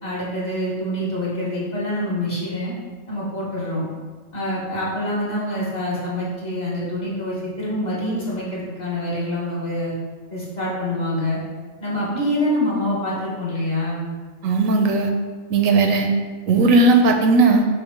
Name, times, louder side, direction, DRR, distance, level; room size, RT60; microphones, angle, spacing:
voice 1, 0.0-2.7 3.1-3.9 4.3-9.9 10.3-11.4 11.8-14.1, left 1 dB, 35° left, -7 dB, 1.2 m, -25 dB
voice 2, 14.4-15.1 15.5-16.1 16.5-17.7, right 3 dB, 85° right, 4 dB, 1.0 m, -16 dB
5.0 x 2.2 x 4.5 m, 1.4 s
omnidirectional pair, 1.4 m